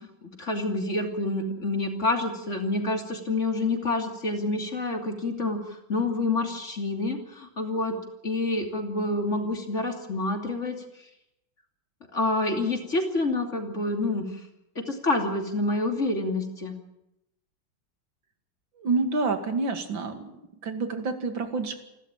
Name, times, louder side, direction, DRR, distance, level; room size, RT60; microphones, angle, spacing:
voice 1, 0.2-8.0 8.2-10.8 12.1-14.3 14.7-16.8, left 2 dB, 40° left, 4 dB, 3.2 m, -28 dB
voice 2, 18.8-20.4 20.6-21.8, right 3 dB, 90° right, 7 dB, 3.0 m, -28 dB
28.5 x 12.5 x 9.0 m, 0.86 s
omnidirectional pair, 2.0 m